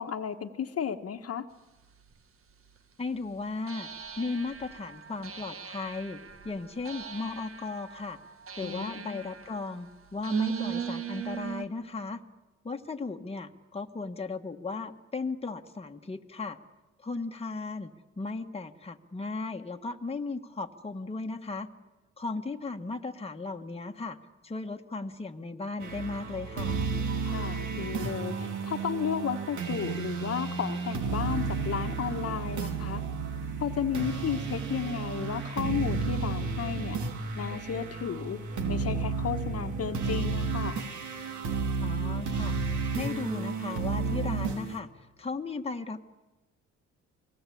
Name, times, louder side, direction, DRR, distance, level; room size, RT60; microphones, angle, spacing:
voice 1, 0.0-1.5 8.6-9.3 27.2-33.0 33.6-37.0 37.4-38.4 38.7-40.8, left 8 dB, 50° left, 6 dB, 1.4 m, -33 dB
sound 1, 2.1-2.2 3.7-11.6, right 8 dB, 45° right, 1.7 m, -39 dB
voice 2, 3.0-3.9 4.2-8.2 8.6-12.2 12.6-16.6 17.0-21.7 22.2-24.2 24.4-26.8 41.8-44.9 45.2-46.1, left 3 dB, 20° left, 4 dB, 1.5 m, -36 dB
sound 2, 25.8-44.8, right 4 dB, 75° right, 3.1 m, -32 dB
28.5 x 20.0 x 8.6 m, 1.1 s
cardioid pair, 90°, 30 cm